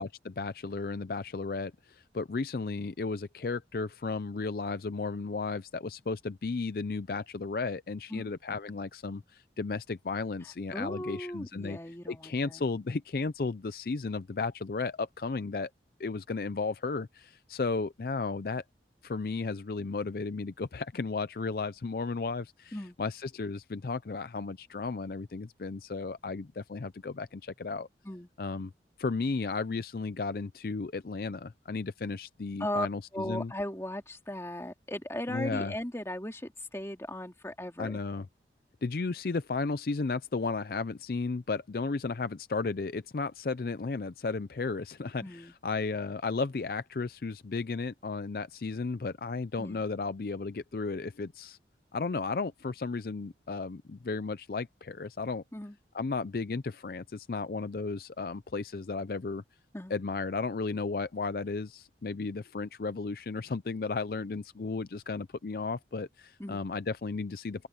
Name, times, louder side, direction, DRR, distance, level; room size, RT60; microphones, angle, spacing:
voice 1, 0.0-11.8 12.1-15.7 16.0-18.6 19.0-27.9 28.4-28.7 29.0-33.5 35.3-35.7 37.8-38.3 38.8-51.6 51.9-55.4 55.9-59.4 59.9-67.7, left 4 dB, 55° left, 0.5 m, -34 dB
voice 2, 10.7-12.6 22.7-23.0 28.0-28.3 32.6-32.9 33.1-38.0 45.2-45.5 49.6-49.8 55.5-55.8 59.7-59.9 66.4-66.6, left 1 dB, 15° left, 2.4 m, -37 dB
open air
head